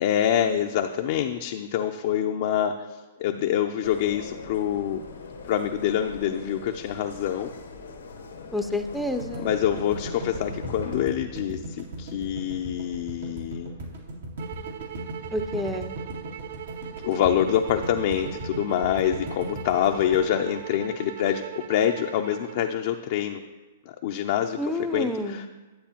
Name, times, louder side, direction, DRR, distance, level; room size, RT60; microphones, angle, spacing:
voice 1, 0.0-5.0 5.4-7.5 9.4-13.9 17.0-21.4 21.7-23.4 23.9-25.5, left 10 dB, 55° left, 4 dB, 0.5 m, -26 dB
sound 1, 3.8-11.1, left 4 dB, 90° left, 1.0 m, -41 dB
voice 2, 8.5-9.5 15.3-15.9 24.6-25.4, left 1 dB, ahead, 7 dB, 0.5 m, -29 dB
sound 2, 9.2-21.4, right 1 dB, 85° right, 2.1 m, -37 dB
sound 3, 14.4-22.7, right 11 dB, 60° right, 0.4 m, -40 dB
10.5 x 8.2 x 2.9 m, 1.3 s
hypercardioid pair, 130°, 0 cm